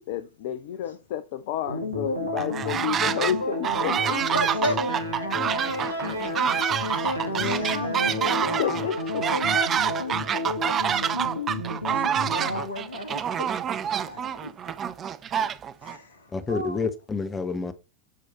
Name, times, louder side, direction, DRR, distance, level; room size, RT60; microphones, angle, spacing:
voice 1, 0.1-4.2 8.4-9.0 15.4-15.5, left 10 dB, 50° left, 0.7 m, -30 dB
sound 1, 1.7-12.6, left 1 dB, 85° right, 2.0 m, -31 dB
sound 2, 2.4-3.3 3.6-16.0, right 8 dB, 25° right, 0.6 m, -27 dB
voice 2, 4.3-4.8 5.2-5.6 6.8-8.8 9.3-10.6 11.9-13.8 14.0-14.5 15.8-16.9, left 1 dB, 70° left, 2.2 m, -34 dB
voice 3, 16.3-17.7, left 4 dB, 15° left, 1.1 m, -29 dB
11.0 x 4.9 x 4.3 m
figure-of-eight pair, 90°, 0 cm